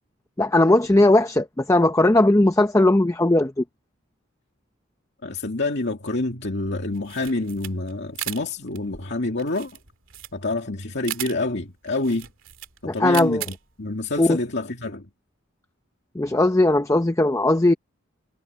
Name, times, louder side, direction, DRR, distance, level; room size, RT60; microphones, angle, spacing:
voice 1, 0.4-3.6 12.8-13.4 14.2-14.4 16.2-17.7, left 1 dB, 15° left, 0.7 m, -18 dB
voice 2, 5.2-9.7 10.3-12.3 12.8-15.1, left 2 dB, 60° left, 2.3 m, -27 dB
sound 1, 6.9-14.3, right 13 dB, 70° right, 2.4 m, -37 dB
head